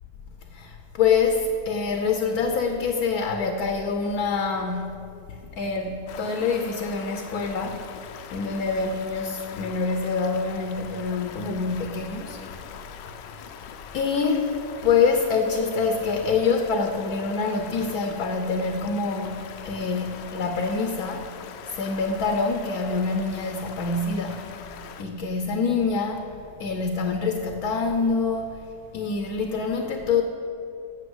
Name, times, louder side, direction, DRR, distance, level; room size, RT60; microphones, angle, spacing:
voice 1, 0.5-4.9 5.3-7.8 8.3-12.4 13.9-14.6 14.8-21.3 21.6-24.4 25.0-26.3 26.6-28.6 28.9-30.2, left 4 dB, 65° left, 5 dB, 1.1 m, -25 dB
Stream, 6.1-25.0, left 7 dB, 85° left, 1.3 m, -42 dB
8.6 x 6.7 x 7.8 m, 2.6 s
omnidirectional pair, 1.9 m